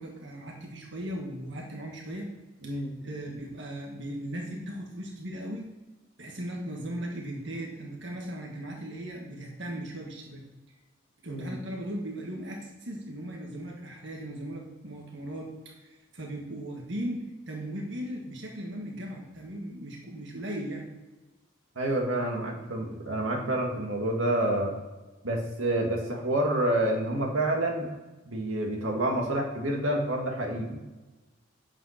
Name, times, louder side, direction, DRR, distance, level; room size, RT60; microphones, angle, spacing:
voice 1, 0.0-2.3 2.6-5.7 6.2-10.4 11.2-20.9, right 1 dB, 60° right, 0 dB, 1.7 m, -38 dB
voice 2, 2.6-2.9 11.3-11.6 21.8-24.7 25.2-27.9 28.3-30.8, right 1 dB, 85° right, 0 dB, 2.0 m, -28 dB
8.3 x 7.3 x 5.8 m, 1.2 s
head